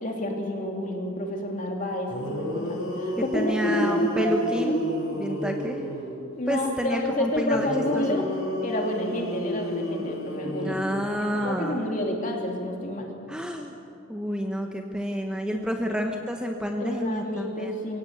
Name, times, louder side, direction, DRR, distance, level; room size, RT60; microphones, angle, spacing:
voice 1, 0.0-5.0 6.4-8.2 8.6-10.8 11.3-13.1 15.5-16.1 16.8-18.0, left 1 dB, 40° left, 1 dB, 2.9 m, -29 dB
sound 1, 1.8-1.9 2.1-6.3 7.5-11.5, equal, 90° left, 6.1 m, -32 dB
voice 2, 3.2-4.7 5.1-5.8 6.5-7.7 7.9-8.2 10.6-11.8 13.3-13.8 14.1-17.8, equal, 5° right, 3 dB, 1.0 m, -29 dB
23.5 x 16.5 x 8.3 m, 2.7 s
head